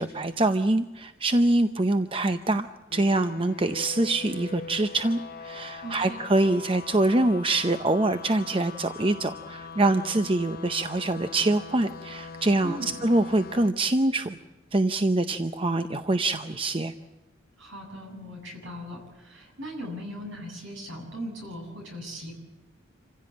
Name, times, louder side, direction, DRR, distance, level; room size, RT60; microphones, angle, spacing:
voice 1, 0.0-2.7 2.9-14.4 14.7-16.9, right 2 dB, 25° right, 9 dB, 0.7 m, -24 dB
sound 1, 2.9-13.7, left 5 dB, 45° left, 0.8 m, -42 dB
voice 2, 5.8-6.2 12.6-13.0 17.6-22.4, equal, 65° right, 1 dB, 7.5 m, -39 dB
27.0 x 16.0 x 8.7 m, 1.1 s
head